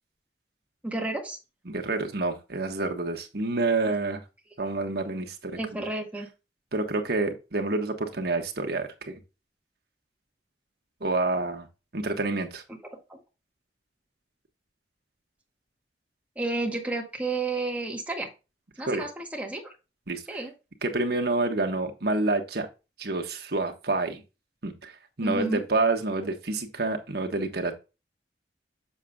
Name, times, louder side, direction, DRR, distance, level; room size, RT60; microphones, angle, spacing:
voice 1, 0.8-1.4 5.6-6.3 13.1-13.2 16.3-18.3 18.8-19.7 20.3-20.5 25.2-25.6, right 2 dB, 10° right, 0 dB, 1.8 m, -31 dB
voice 2, 1.7-4.2 4.6-5.6 6.7-9.2 11.0-11.7 11.9-12.6 18.9-19.0 20.1-20.4 20.8-22.7 23.0-24.2 24.6-24.9 25.2-27.8, right 2 dB, 60° right, 4 dB, 1.4 m, -28 dB
7.1 x 7.0 x 2.3 m, 0.28 s
head